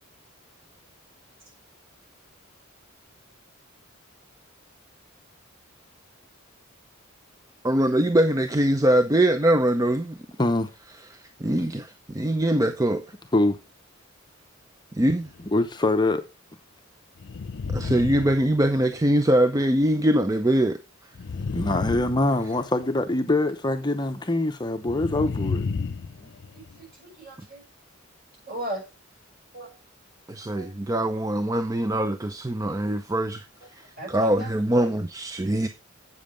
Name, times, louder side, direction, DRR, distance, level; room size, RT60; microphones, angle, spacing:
voice 1, 7.6-10.2 11.1-13.0 14.9-15.3 17.7-20.8 30.3-33.4 33.7-33.8 34.1-35.7, right 1 dB, 15° right, 0.5 m, -22 dB
voice 2, 10.4-10.7 13.3-13.6 15.5-16.2 21.5-25.7, left 2 dB, 20° left, 0.7 m, -24 dB
sound 1, 15.2-15.6 17.2-19.1 21.1-22.9 24.8-26.8, left 4 dB, 55° left, 0.5 m, -32 dB
voice 3, 26.5-27.6 28.5-28.8 29.5-29.7 30.5-30.7 34.0-34.5 34.8-34.9, right 1 dB, 45° right, 6.0 m, -36 dB
8.3 x 7.3 x 5.0 m
head